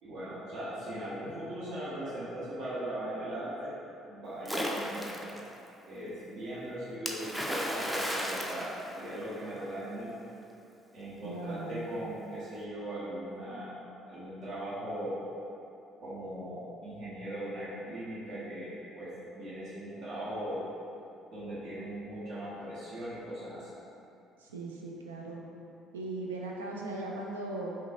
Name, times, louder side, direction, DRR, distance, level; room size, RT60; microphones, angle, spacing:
voice 1, 0.0-3.7 4.1-5.4 5.8-10.2 10.9-13.7 14.1-15.2 16.0-20.7 21.3-23.8, right 1 dB, 60° right, -11 dB, 1.5 m, -39 dB
Splash splatter, 4.4-5.4 7.1-9.5, equal, 5° right, 0.5 m, -34 dB
voice 2, 11.2-11.9 24.4-25.4 25.9-27.8, right 2 dB, 75° right, -2 dB, 0.4 m, -38 dB
5.4 x 2.4 x 2.7 m, 2.7 s
figure-of-eight pair, 50°, 0 cm